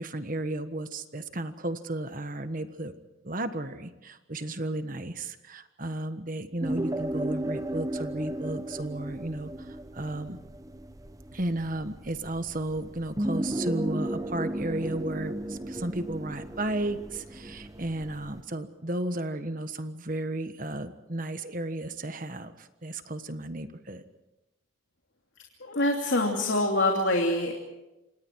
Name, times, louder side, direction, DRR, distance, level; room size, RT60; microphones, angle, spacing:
voice 1, 0.0-2.9 3.2-10.4 11.3-24.0, right 1 dB, 40° right, 10 dB, 1.4 m, -34 dB
sound 1, 6.6-18.4, right 1 dB, 15° right, 0.8 m, -34 dB
voice 2, 25.6-27.5, left 1 dB, 70° left, 1 dB, 2.9 m, -25 dB
28.5 x 26.0 x 4.7 m, 0.99 s
head